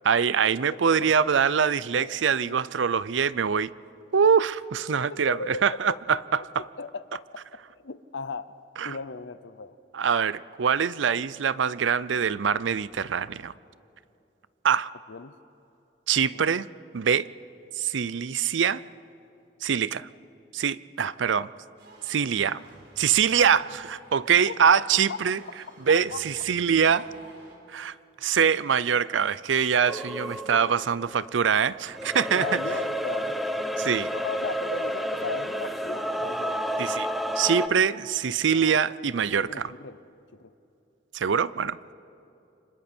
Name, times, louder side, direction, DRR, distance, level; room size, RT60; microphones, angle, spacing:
voice 1, 0.0-3.7 4.1-6.7 8.8-9.0 9.9-13.5 14.6-14.9 16.1-16.7 16.9-17.3 17.8-18.8 19.6-20.1 20.5-21.5 22.1-22.6 23.0-25.4 25.8-27.1 27.7-27.9 28.2-32.5 33.8-34.1 36.8-37.1 37.4-39.7 41.1-41.9, right 7 dB, 80° right, 18 dB, 0.5 m, -24 dB
voice 2, 0.7-1.1 1.9-2.1 2.4-2.6 5.1-6.0 6.4-6.5 6.8-7.4 7.8-8.6 8.8-9.8 15.1-15.3 16.2-16.4 24.5-24.7 26.1-26.2 32.3-33.4 34.1-36.8 38.5-38.8 39.4-40.0 40.3-40.5, left 4 dB, 75° left, 14 dB, 0.7 m, -37 dB
sound 1, 21.8-27.6, right 2 dB, 65° right, 4.1 m, -52 dB
sound 2, 29.9-31.5 31.9-37.7, equal, ahead, 0.9 m, -30 dB
29.0 x 25.5 x 4.4 m, 2.7 s
head